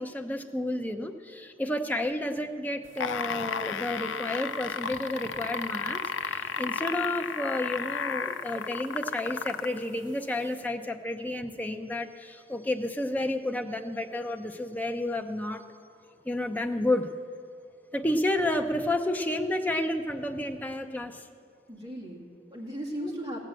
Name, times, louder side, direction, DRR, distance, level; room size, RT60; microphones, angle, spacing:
voice 1, 0.0-15.6 16.2-17.1 17.9-21.3 23.0-23.1, left 1 dB, 10° left, 6 dB, 0.6 m, -31 dB
sound 1, 2.8-9.8 10.6-10.7, left 6 dB, 85° left, 0.5 m, -33 dB
voice 2, 21.7-23.4, equal, 20° right, -3 dB, 2.2 m, -38 dB
16.0 x 7.5 x 7.7 m, 2.2 s
head